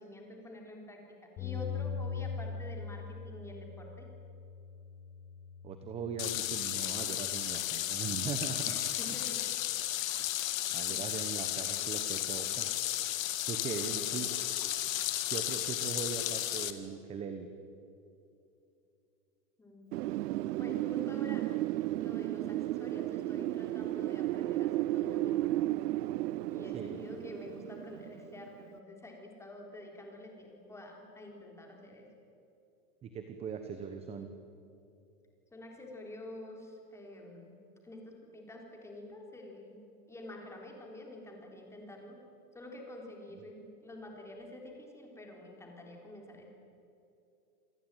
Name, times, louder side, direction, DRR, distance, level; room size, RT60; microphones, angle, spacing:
voice 1, 0.0-4.1 8.6-9.6 10.9-11.0 13.6-14.4 19.6-20.2 20.6-21.5 22.0-25.5 26.5-32.1 35.5-39.8 40.1-42.2 42.5-46.5, left 1 dB, 5° left, 1 dB, 3.7 m, -48 dB
Bass guitar, 1.4-7.6, left 6 dB, 25° left, 6.5 m, -42 dB
voice 2, 5.6-8.8 10.7-12.7 13.5-14.3 15.3-17.5 26.7-27.0 33.0-34.3 43.3-43.4, right 6 dB, 15° right, 7 dB, 1.0 m, -40 dB
sound 1, 6.2-16.7, left 13 dB, 60° left, 2.0 m, -34 dB
Wind, 19.9-28.6, right 15 dB, 85° right, 0.6 m, -34 dB
28.0 x 19.0 x 9.1 m, 2.7 s
supercardioid pair, 165°, 46 cm